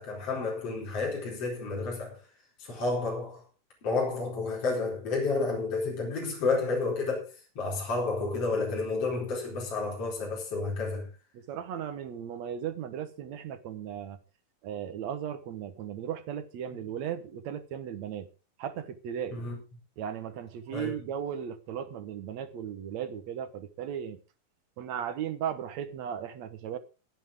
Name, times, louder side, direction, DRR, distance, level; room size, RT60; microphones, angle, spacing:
voice 1, 0.0-2.2 2.6-3.4 3.8-11.1 19.3-19.6 20.7-20.9, left 3 dB, 45° left, 5.3 m, -31 dB
voice 2, 11.3-14.2 14.6-18.3 18.6-19.4 20.0-24.2 24.8-26.8, right 9 dB, 60° right, 2.2 m, -36 dB
22.5 x 8.2 x 3.7 m
omnidirectional pair, 4.0 m